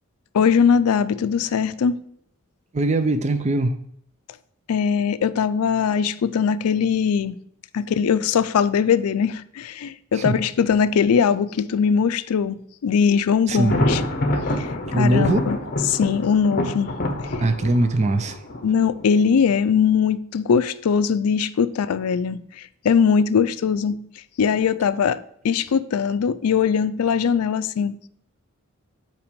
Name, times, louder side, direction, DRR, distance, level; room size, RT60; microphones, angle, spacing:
voice 1, 0.3-2.0 4.7-7.4 7.7-14.0 14.6-14.7 15.0-15.6 15.9-16.9 18.6-24.0 24.4-28.0, left 6 dB, 90° left, 0.4 m, -21 dB
voice 2, 2.7-3.7 10.1-10.4 13.5-13.8 14.9-15.5 17.4-18.4, right 2 dB, 30° right, 0.4 m, -21 dB
Thunder, 13.5-19.4, left 1 dB, 40° left, 0.8 m, -26 dB
5.8 x 4.5 x 5.1 m
head